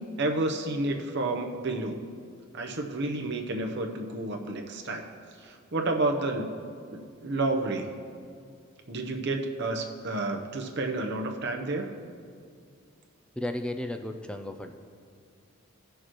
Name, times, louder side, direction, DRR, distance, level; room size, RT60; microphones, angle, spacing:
voice 1, 0.2-2.0 2.5-5.1 5.4-6.5 6.9-7.9 8.9-11.9, right 2 dB, 50° right, 4 dB, 0.8 m, -30 dB
voice 2, 13.4-14.7, left 1 dB, 5° left, 6 dB, 0.3 m, -34 dB
17.5 x 6.6 x 3.1 m, 2.2 s
head